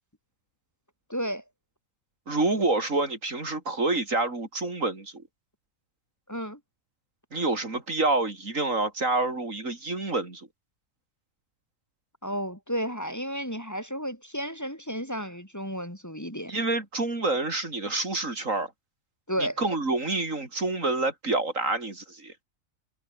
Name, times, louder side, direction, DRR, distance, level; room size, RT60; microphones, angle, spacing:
voice 1, 1.1-1.4 6.3-6.6 12.2-16.5 19.3-19.6, equal, 10° left, 3.8 m, -32 dB
voice 2, 2.3-5.2 7.3-10.5 16.5-18.7 19.4-22.3, right 2 dB, 65° right, 4.4 m, -27 dB
omnidirectional pair, 1.4 m